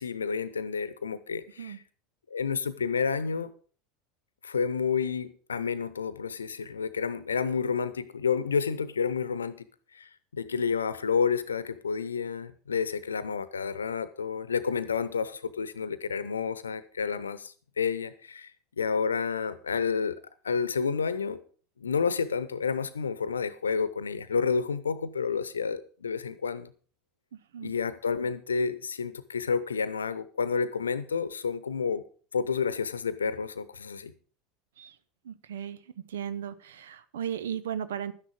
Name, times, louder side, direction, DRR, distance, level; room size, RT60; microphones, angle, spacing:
voice 1, 0.0-1.8 2.3-3.5 4.4-9.7 9.9-18.5 18.8-20.2 20.4-21.4 21.8-26.7 27.6-32.0 32.3-34.1, left 5 dB, 75° left, 0.9 m, -30 dB
voice 2, 27.3-27.7 34.8-34.9 35.2-35.8 36.1-38.1, right 9 dB, 65° right, 0.9 m, -36 dB
12.0 x 10.0 x 5.3 m
figure-of-eight pair, 75°, 0 cm